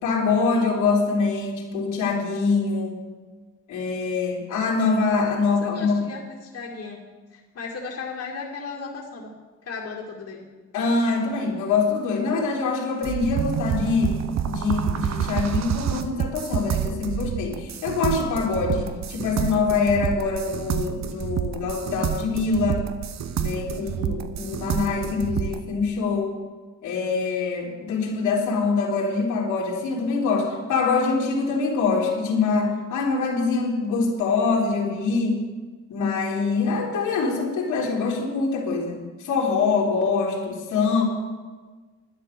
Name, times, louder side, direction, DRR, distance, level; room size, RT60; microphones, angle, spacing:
voice 1, 0.0-3.0 3.7-6.0 10.7-14.2 14.5-22.8 23.4-26.3 26.8-35.4 35.9-41.0, left 4 dB, 85° left, -2 dB, 3.4 m, -24 dB
voice 2, 5.6-7.0 7.3-9.3 9.6-10.4, left 4 dB, 55° left, -2 dB, 2.2 m, -35 dB
sound 1, 13.0-25.6, right 9 dB, 60° right, 0.9 m, -28 dB
11.0 x 10.0 x 6.7 m, 1.3 s
cardioid pair, 90°, 30 cm